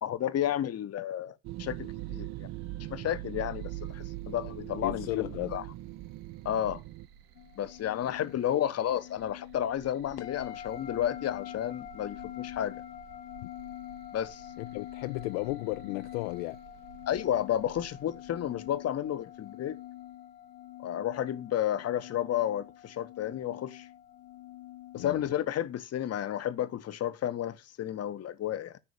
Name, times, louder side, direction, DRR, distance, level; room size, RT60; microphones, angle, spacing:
voice 1, 0.0-2.5 2.9-5.1 5.5-5.6 6.4-6.8 7.6-12.8 14.1-14.5 17.1-19.8 20.8-23.9 24.9-28.8, left 11 dB, 30° left, 0.8 m, -32 dB
sound 1, 1.4-7.1, right 16 dB, 40° right, 0.5 m, -40 dB
sound 2, 2.0-19.9, right 8 dB, 60° right, 1.5 m, -56 dB
voice 2, 4.8-5.6 8.2-8.3 13.4-13.5 14.6-16.6 25.0-25.3, left 21 dB, 55° left, 0.5 m, -34 dB
sound 3, 7.3-25.3, left 13 dB, 75° left, 0.9 m, -45 dB
10.0 x 4.7 x 6.7 m
figure-of-eight pair, 50°, 48 cm